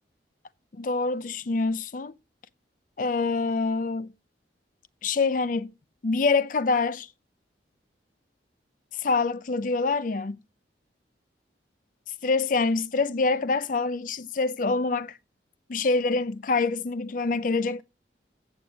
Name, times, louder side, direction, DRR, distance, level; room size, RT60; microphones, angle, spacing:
voice 1, 0.7-2.1 3.0-4.1 5.0-5.7 6.0-7.1 8.9-10.4 12.2-15.2 15.7-17.8, left 3 dB, 45° left, 0.5 m, -25 dB
8.2 x 6.9 x 6.0 m
head